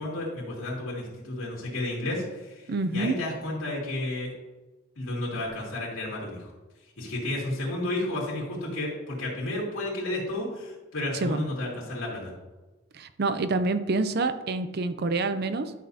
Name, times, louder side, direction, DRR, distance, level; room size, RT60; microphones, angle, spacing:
voice 1, 0.0-4.3 5.0-6.5 7.0-12.3, left 1 dB, 85° left, -4 dB, 2.6 m, -32 dB
voice 2, 2.7-3.2 11.2-11.4 12.9-15.7, right 3 dB, 50° right, 11 dB, 0.5 m, -27 dB
11.5 x 6.3 x 2.8 m, 1.1 s
head